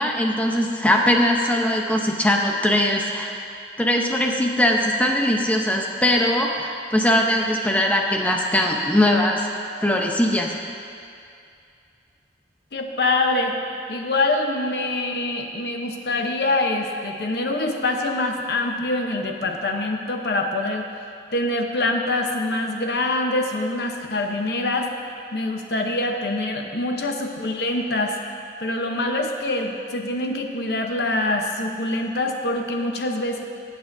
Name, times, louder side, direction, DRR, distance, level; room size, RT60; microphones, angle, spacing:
voice 1, 0.0-3.3 3.8-9.5 9.8-10.5, left 1 dB, 10° left, 0 dB, 0.7 m, -20 dB
voice 2, 12.7-13.6 13.9-20.9 21.3-24.9 25.3-28.2 28.6-33.4, left 2 dB, 65° left, 3 dB, 0.9 m, -24 dB
18.0 x 7.6 x 2.7 m, 2.4 s
head